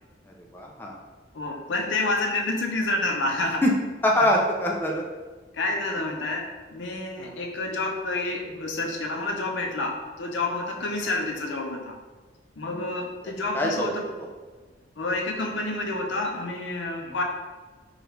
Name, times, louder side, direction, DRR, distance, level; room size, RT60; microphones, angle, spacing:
voice 1, 0.5-1.0 3.6-3.7 4.0-5.0 7.2-7.4 12.7-12.8 13.5-13.9 17.0-17.2, left 1 dB, 10° left, -1 dB, 0.4 m, -24 dB
voice 2, 1.3-3.6 5.5-6.5 6.7-12.0 12.6-14.1 15.0-17.2, left 2 dB, 80° left, 2 dB, 0.6 m, -29 dB
4.8 x 2.4 x 3.1 m, 1.4 s
head